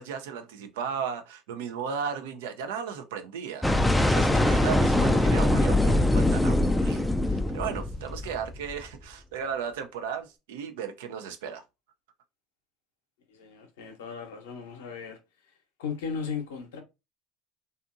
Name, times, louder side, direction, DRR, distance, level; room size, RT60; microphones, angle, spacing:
voice 1, 0.0-11.6, right 7 dB, 75° right, 0.4 m, -35 dB
sound 1, 3.6-8.8, left 1 dB, 10° left, 0.3 m, -23 dB
voice 2, 13.3-15.2 15.8-16.8, left 6 dB, 80° left, 0.7 m, -36 dB
2.7 x 2.4 x 2.5 m
hypercardioid pair, 70°, 0 cm